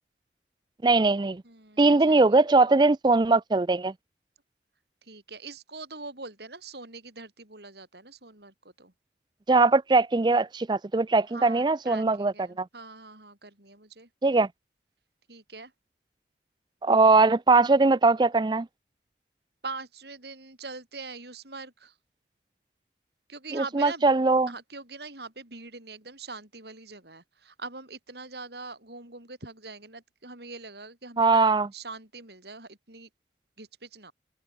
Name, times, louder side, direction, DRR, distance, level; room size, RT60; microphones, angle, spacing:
voice 1, 0.8-1.4 1.8-3.9 9.5-12.7 14.2-14.5 16.8-18.7 23.5-24.5 31.2-31.7, right 3 dB, 25° right, 0.4 m, -21 dB
voice 2, 1.4-2.4 5.0-8.9 11.3-14.1 15.3-15.7 19.6-21.9 23.3-24.1 24.5-31.4 31.7-33.1 33.6-34.1, right 3 dB, 65° right, 6.2 m, -43 dB
head